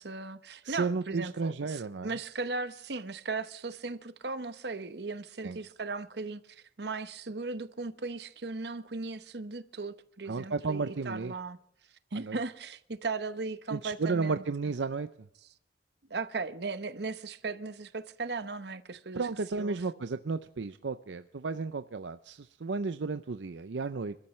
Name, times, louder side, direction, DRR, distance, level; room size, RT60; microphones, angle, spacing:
voice 1, 0.0-11.6 12.1-14.4 16.1-19.3 19.5-19.8, right 3 dB, 65° right, 0.9 m, -37 dB
voice 2, 0.6-2.1 5.4-5.6 10.3-11.3 12.1-12.4 13.7-15.1 19.1-24.1, right 4 dB, 80° right, 0.6 m, -33 dB
26.5 x 13.0 x 3.2 m
head